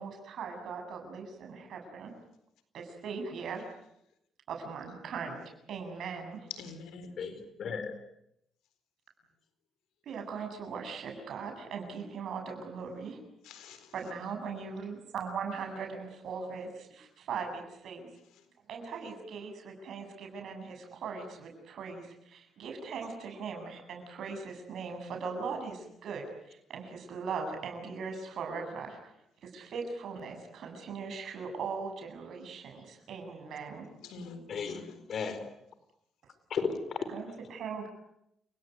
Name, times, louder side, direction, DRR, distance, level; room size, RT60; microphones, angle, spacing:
voice 1, 0.0-2.1 2.7-3.6 4.5-5.4 5.7-6.5 10.1-13.2 13.9-18.1 18.7-29.1 29.4-33.8 37.1-37.9, right 5 dB, 70° right, 7.6 m, -39 dB
voice 2, 6.5-7.3 13.4-13.9 18.3-18.5 34.0-35.0, left 5 dB, 90° left, 4.1 m, -46 dB
voice 3, 7.2-8.0 33.8-33.9 34.5-35.5 36.5-37.1, left 5 dB, 60° left, 4.4 m, -35 dB
29.5 x 18.0 x 9.5 m
cardioid pair, 90°, 0 cm